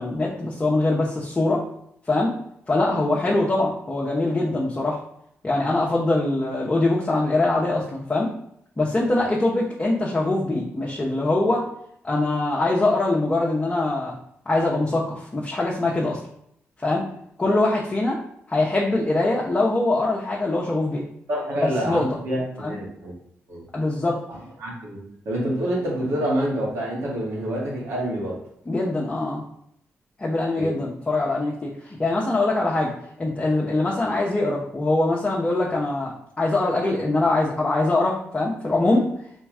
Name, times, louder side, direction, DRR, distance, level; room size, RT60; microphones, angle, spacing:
voice 1, 0.0-1.6 2.1-2.3 2.7-5.0 5.4-8.3 8.8-11.6 12.0-14.2 14.5-16.2 16.8-17.1 17.4-18.2 18.5-21.0 21.6-22.0 22.6-22.8 23.7-24.2 28.7-29.4 30.2-32.9 33.2-39.1, left 2 dB, 25° left, -4 dB, 1.0 m, -23 dB
voice 2, 21.3-23.1 23.5-23.6 24.3-28.4 30.6-30.7, right 1 dB, 80° right, -4 dB, 1.9 m, -27 dB
3.5 x 3.0 x 4.9 m, 0.72 s
cardioid pair, 80°, 5 cm